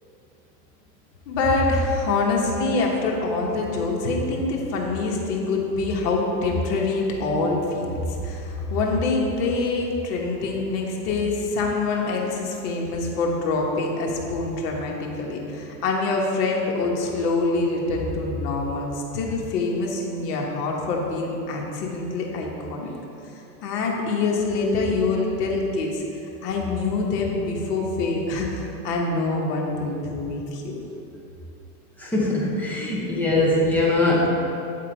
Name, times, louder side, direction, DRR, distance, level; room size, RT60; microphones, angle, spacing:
voice 1, 1.3-22.9 23.6-26.0 26.4-30.8, left 3 dB, 70° left, -1 dB, 1.4 m, -25 dB
voice 2, 32.0-34.3, left 2 dB, 5° left, -6 dB, 0.5 m, -21 dB
8.6 x 3.7 x 4.5 m, 2.8 s
supercardioid pair, 150°, 49 cm